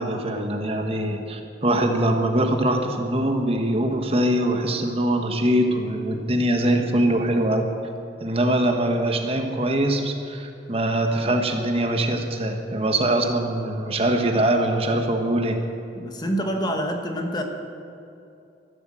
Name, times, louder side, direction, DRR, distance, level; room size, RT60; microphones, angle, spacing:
voice 1, 0.0-7.7 8.2-15.6, right 1 dB, 35° right, 4 dB, 1.2 m, -23 dB
voice 2, 15.9-17.4, equal, 25° left, 4 dB, 1.2 m, -26 dB
13.5 x 11.5 x 7.6 m, 2.7 s
head